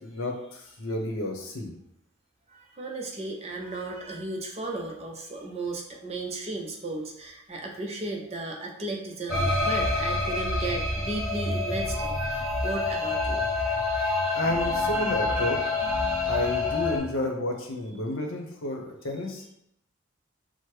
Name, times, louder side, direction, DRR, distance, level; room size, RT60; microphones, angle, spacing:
voice 1, 0.0-1.7 14.3-15.6 16.2-19.5, left 1 dB, 75° left, 1 dB, 0.8 m, -31 dB
voice 2, 2.5-13.4 14.1-14.2 16.0-16.4, right 2 dB, 30° right, 0 dB, 0.5 m, -35 dB
sound 1, 9.3-17.0, left 2 dB, 5° right, 0.9 m, -27 dB
6.0 x 2.1 x 3.2 m, 0.78 s
head